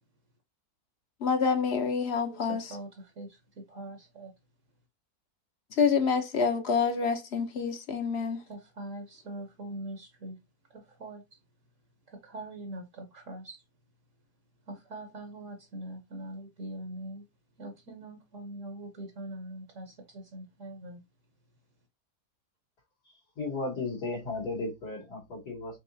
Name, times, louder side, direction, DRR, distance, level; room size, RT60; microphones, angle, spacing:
voice 1, 1.2-2.8 5.7-8.4, left 5 dB, 50° left, 0.9 m, -27 dB
voice 2, 2.3-4.3 8.5-10.4 10.7-11.2 12.1-13.6 14.7-17.2 17.6-21.0, right 1 dB, 60° right, 1.2 m, -42 dB
voice 3, 23.0-25.8, left 3 dB, 80° left, 2.5 m, -35 dB
5.5 x 2.9 x 2.7 m
omnidirectional pair, 1.7 m